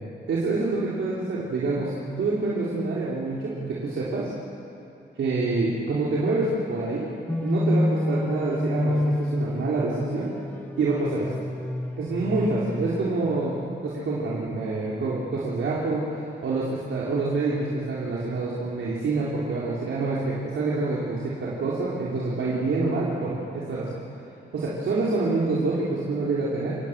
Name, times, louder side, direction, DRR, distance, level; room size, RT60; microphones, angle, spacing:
voice 1, 0.3-4.3 5.2-7.1 7.4-10.3 10.8-11.3 12.0-24.0 24.5-26.8, right 3 dB, 85° right, -7 dB, 3.9 m, -27 dB
sound 1, 7.3-13.5, left 1 dB, 5° left, 0.6 m, -28 dB
27.5 x 18.0 x 7.6 m, 2.8 s
cardioid pair, 90°, 19 cm